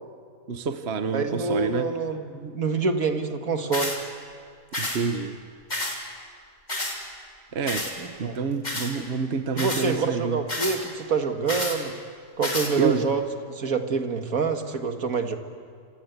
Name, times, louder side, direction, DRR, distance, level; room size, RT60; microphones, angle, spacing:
voice 1, 0.5-1.9 4.8-5.4 7.5-7.9 8.2-10.4 12.8-13.1, right 5 dB, 50° right, 8 dB, 1.2 m, -27 dB
voice 2, 1.1-4.0 8.0-8.4 9.5-11.9 12.4-15.3, right 4 dB, 65° right, 6 dB, 2.1 m, -26 dB
sound 1, 3.7-4.0 4.7-5.0 5.7-6.0 6.7-7.0 7.7-7.9 8.6-8.9 9.6-9.9 10.5-10.8 11.5-11.8 12.4-12.7, left 1 dB, 30° left, 3.5 m, -29 dB
28.0 x 26.0 x 8.2 m, 2.2 s
omnidirectional pair, 1.6 m